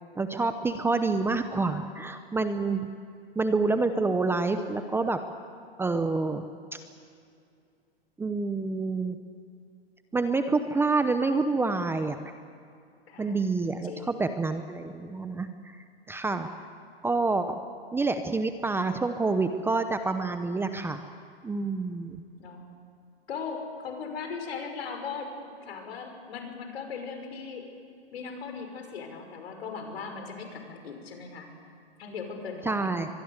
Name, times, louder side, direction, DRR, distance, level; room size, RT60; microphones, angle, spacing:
voice 1, 0.2-2.9 3.4-5.2 5.8-6.5 6.7-6.8 8.2-9.2 10.1-12.2 13.2-15.8 16.1-16.5 17.0-17.6 17.9-21.0 21.4-22.2 32.6-33.1, right 3 dB, 5° right, 9 dB, 0.8 m, -27 dB
voice 2, 13.1-13.4 13.8-14.2 22.4-22.7 23.3-27.7 28.1-31.5 32.0-33.0, left 5 dB, 70° left, 4 dB, 5.8 m, -38 dB
24.0 x 21.5 x 8.1 m, 2.3 s
hypercardioid pair, 130°, 32 cm